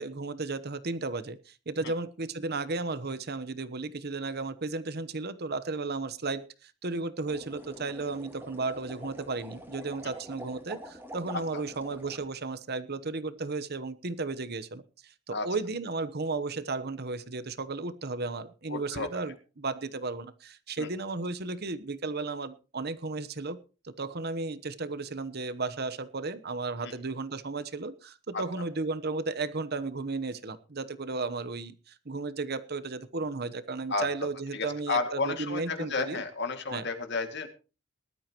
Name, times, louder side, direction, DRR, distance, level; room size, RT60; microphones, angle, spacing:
voice 1, 0.0-23.6 23.8-36.2 36.7-36.9, right 3 dB, 55° right, 15 dB, 1.0 m, -34 dB
sound 1, 7.2-12.2, equal, 10° right, 2.4 m, -46 dB
voice 2, 18.7-19.1 20.8-20.9 26.8-26.9 28.3-28.4 33.9-34.0 34.5-37.5, left 4 dB, 60° left, 6 dB, 2.3 m, -32 dB
19.5 x 12.5 x 3.0 m, 0.34 s
head